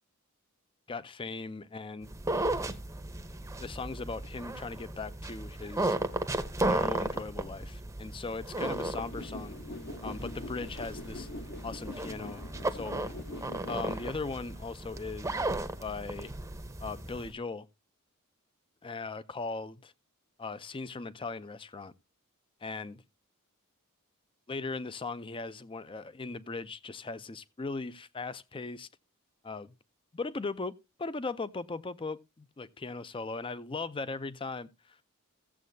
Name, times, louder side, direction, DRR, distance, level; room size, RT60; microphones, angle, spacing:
voice 1, 0.9-2.1 3.6-6.0 6.6-9.6 10.0-11.3 11.6-12.4 12.7-13.1 13.7-15.4 15.8-16.3 16.8-17.7 18.8-19.9 20.4-21.9 22.6-23.0 24.5-28.9 29.4-29.7 30.1-35.2, left 3 dB, 25° left, 0.5 m, -38 dB
sound 1, 2.0-17.3, right 2 dB, 15° right, 0.8 m, -35 dB
sound 2, 8.6-14.1, left 2 dB, 55° left, 1.1 m, -43 dB
16.0 x 7.4 x 2.7 m
head